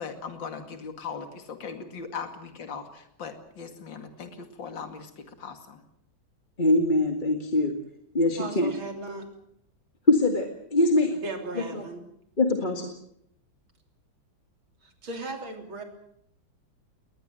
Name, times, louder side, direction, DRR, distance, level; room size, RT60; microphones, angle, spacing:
voice 1, 0.0-5.8, left 5 dB, 65° left, 7 dB, 3.0 m, -39 dB
voice 2, 6.6-7.7 8.1-8.7 10.1-11.2 11.6-11.8 12.4-12.9, left 2 dB, 25° left, 4 dB, 2.1 m, -23 dB
voice 3, 8.4-9.3 11.2-12.0 15.0-15.8, right 3 dB, 80° right, 5 dB, 4.1 m, -36 dB
21.0 x 20.0 x 7.8 m, 0.72 s
omnidirectional pair, 2.2 m